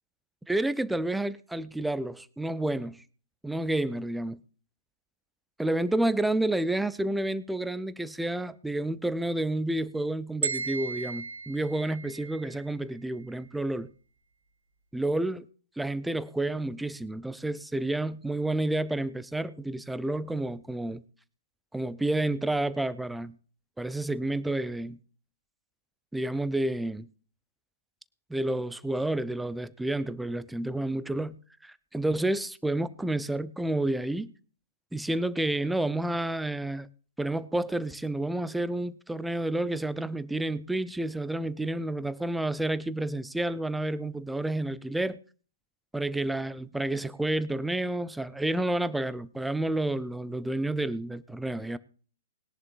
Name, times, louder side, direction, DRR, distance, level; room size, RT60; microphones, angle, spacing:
voice 1, 0.5-3.0 3.4-4.4 5.6-13.9 14.9-15.4 15.8-21.0 21.7-23.4 23.8-25.0 26.1-27.1 28.3-34.3 34.9-36.9 37.2-45.2 45.9-51.8, right 1 dB, 5° right, 0.5 m, -30 dB
sound 1, 10.4-12.6, right 4 dB, 65° right, 1.4 m, -35 dB
20.5 x 11.0 x 2.4 m
figure-of-eight pair, 115°, 0 cm